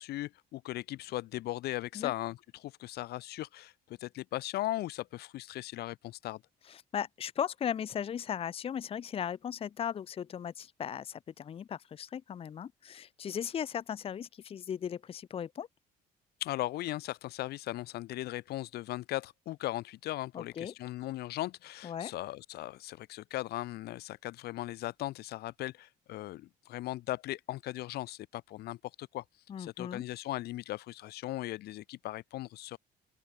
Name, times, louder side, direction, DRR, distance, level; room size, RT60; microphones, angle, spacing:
voice 1, 0.0-6.4 16.4-29.2 29.6-32.8, left 16 dB, 70° left, 0.7 m, -38 dB
voice 2, 6.7-15.7 20.3-20.7 21.8-22.1 29.5-30.0, left 8 dB, 35° left, 0.6 m, -37 dB
open air
cardioid pair, 110°, 17 cm